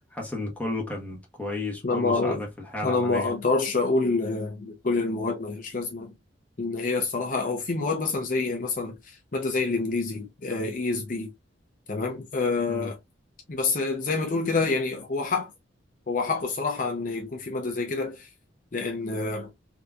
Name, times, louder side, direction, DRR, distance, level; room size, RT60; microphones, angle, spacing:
voice 1, 0.1-3.3 12.7-12.9, left 2 dB, 10° left, 1.1 m, -33 dB
voice 2, 1.8-2.4 2.8-6.1 6.6-11.3 11.9-13.0 13.5-15.5 16.1-18.3 18.7-19.5, left 3 dB, 45° left, 0.6 m, -27 dB
3.5 x 2.8 x 2.4 m
head